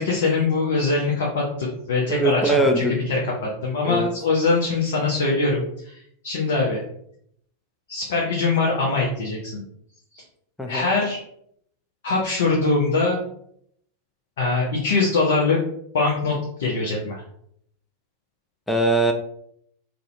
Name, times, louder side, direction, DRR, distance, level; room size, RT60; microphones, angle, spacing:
voice 1, 0.0-6.8 7.9-9.6 10.1-10.2 10.7-11.2 12.0-13.2 14.4-15.6 15.9-17.2, left 3 dB, 60° left, -3 dB, 0.5 m, -23 dB
voice 2, 2.1-3.0 3.8-4.1 10.6-10.9 18.7-19.1, right 2 dB, 5° left, 3 dB, 0.3 m, -21 dB
2.4 x 2.0 x 2.5 m, 0.70 s
figure-of-eight pair, 90°, 0 cm